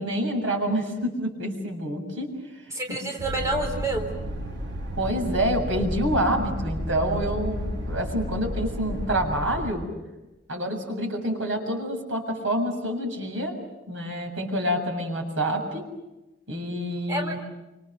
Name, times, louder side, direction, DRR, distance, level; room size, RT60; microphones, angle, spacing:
voice 1, 0.0-2.3 2.9-3.0 5.0-9.8 10.5-13.5 13.9-15.9 16.5-17.4, equal, 80° right, 3 dB, 7.0 m, -27 dB
voice 2, 2.7-4.1 17.1-17.4, right 1 dB, 15° right, 2 dB, 3.8 m, -28 dB
sound 1, 3.2-9.7, equal, 65° right, 3.7 m, -32 dB
29.5 x 26.0 x 6.6 m, 1.0 s
head